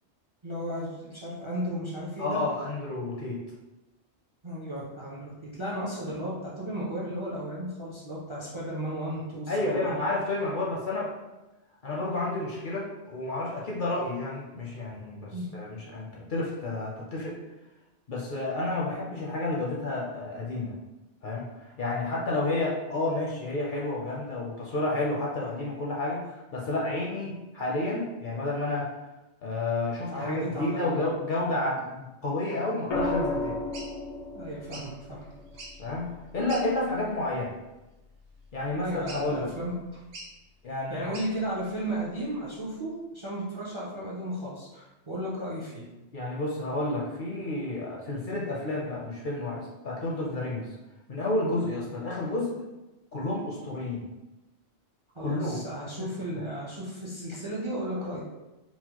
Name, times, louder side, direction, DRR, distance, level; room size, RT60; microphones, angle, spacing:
voice 1, 0.4-2.4 4.4-9.9 15.3-15.5 30.1-31.2 34.3-35.3 38.7-40.0 40.9-45.8 55.1-58.2, right 1 dB, 35° right, -6 dB, 0.5 m, -34 dB
voice 2, 2.2-3.4 9.5-11.1 11.8-17.4 18.1-20.8 21.2-28.9 29.4-33.6 35.8-37.5 38.5-39.5 40.6-41.1 46.1-50.7 51.1-52.5 53.1-54.0 55.2-55.6 56.3-56.5, left 2 dB, 55° left, -4 dB, 0.6 m, -30 dB
sound 1, 32.9-37.0 38.7-39.1, left 2 dB, 75° left, 1.0 m, -34 dB
sound 2, 33.7-33.9 34.7-34.9 35.5-35.9 36.5-36.7 37.2-37.4 39.1-39.4 40.1-40.3 41.1-41.3, right 2 dB, 85° right, 1.1 m, -43 dB
4.2 x 2.1 x 2.8 m, 1.0 s
omnidirectional pair, 1.2 m